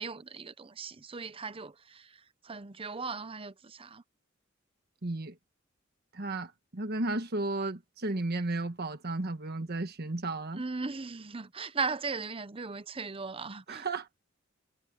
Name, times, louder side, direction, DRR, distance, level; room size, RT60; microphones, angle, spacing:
voice 1, 0.0-2.1 2.4-4.0 10.5-13.8, right 4 dB, 30° right, 0.7 m, -37 dB
voice 2, 5.0-5.3 6.1-10.6 13.7-14.2, right 2 dB, 55° right, 1.3 m, -34 dB
head